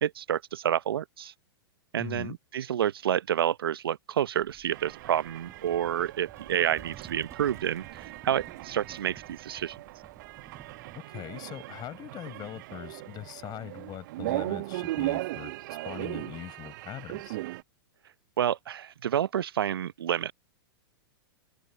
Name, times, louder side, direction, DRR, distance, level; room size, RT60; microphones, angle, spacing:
voice 1, 0.0-1.3 1.9-9.7 18.4-20.3, right 10 dB, 75° right, 0.9 m, -29 dB
voice 2, 2.0-2.4 10.9-17.4, left 13 dB, 35° left, 6.7 m, -41 dB
Livestock farm animals working animals, 4.4-11.0, right 8 dB, 25° right, 3.7 m, -53 dB
sound 1, 4.7-17.6, right 18 dB, 55° right, 0.5 m, -38 dB
open air
hypercardioid pair, 105°, 13 cm